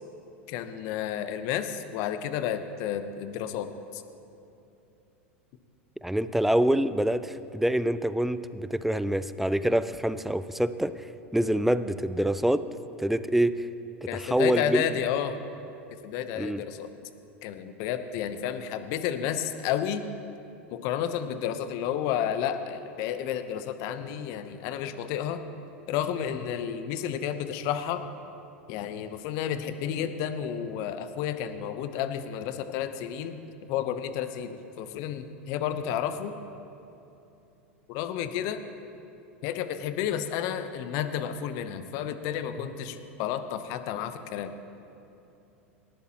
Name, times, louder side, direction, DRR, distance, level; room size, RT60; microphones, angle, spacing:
voice 1, 0.5-4.0 14.1-15.4 16.0-16.9 17.4-20.1 20.7-25.4 25.9-28.0 28.7-33.4 33.7-36.3 37.9-38.6 39.4-44.5, left 9 dB, 55° left, 10 dB, 0.8 m, -31 dB
voice 2, 6.0-12.6 13.0-13.7 14.1-14.8 16.4-16.6, right 1 dB, 5° right, 13 dB, 0.4 m, -26 dB
18.5 x 12.0 x 3.0 m, 2.8 s
hypercardioid pair, 85°, 7 cm